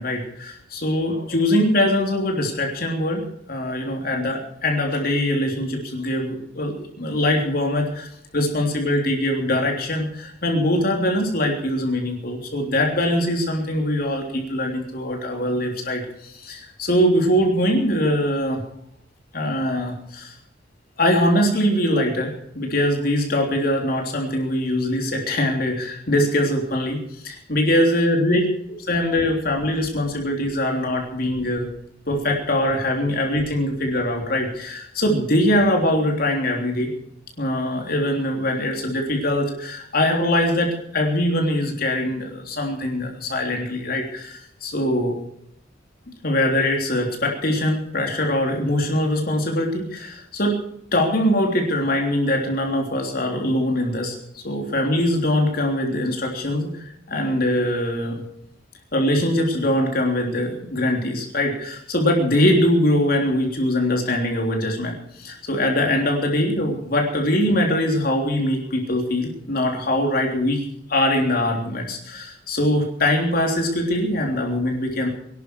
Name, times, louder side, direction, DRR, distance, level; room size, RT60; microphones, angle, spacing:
voice 1, 0.0-8.1 8.3-18.6 19.3-20.3 21.0-28.5 28.9-31.7 32.1-36.9 37.4-45.2 46.2-50.6 50.9-58.2 58.9-70.6 70.9-75.1, left 1 dB, 55° left, 1 dB, 3.5 m, -22 dB
23.5 x 12.0 x 4.7 m, 0.75 s
head